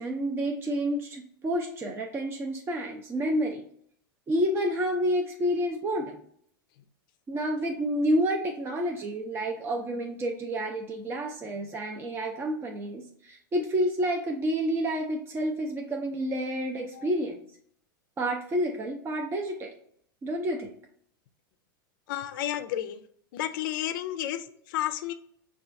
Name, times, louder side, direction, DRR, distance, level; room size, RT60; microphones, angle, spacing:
voice 1, 0.0-3.6 4.3-6.2 7.3-17.4 18.2-19.7 20.2-20.7, equal, 20° right, 1 dB, 0.5 m, -29 dB
voice 2, 22.1-23.0 23.3-25.1, left 12 dB, 60° left, 10 dB, 0.4 m, -32 dB
5.6 x 2.3 x 2.6 m, 0.64 s
hypercardioid pair, 95°, 12 cm